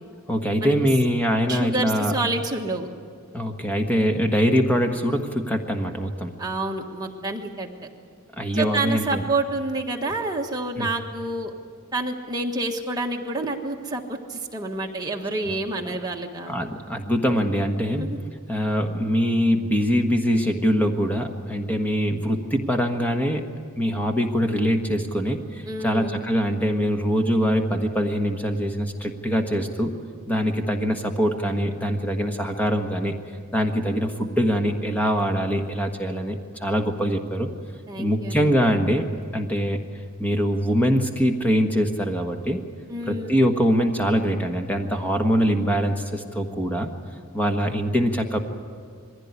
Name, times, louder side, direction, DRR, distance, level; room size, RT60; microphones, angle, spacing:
voice 1, 0.3-2.1 3.3-6.3 8.4-9.2 10.8-10.9 16.5-18.1 18.5-23.4 23.8-29.9 30.3-33.1 33.5-37.5 38.0-39.0 39.3-39.8 40.2-42.6 43.1-46.9 47.3-48.4, equal, 5° left, 5 dB, 1.3 m, -23 dB
voice 2, 1.5-2.9 6.4-7.7 8.5-11.5 11.9-16.5 17.9-18.2 25.7-26.2 37.9-38.5 42.9-43.4, right 2 dB, 15° right, 0 dB, 1.5 m, -28 dB
21.5 x 15.5 x 9.6 m, 2.2 s
head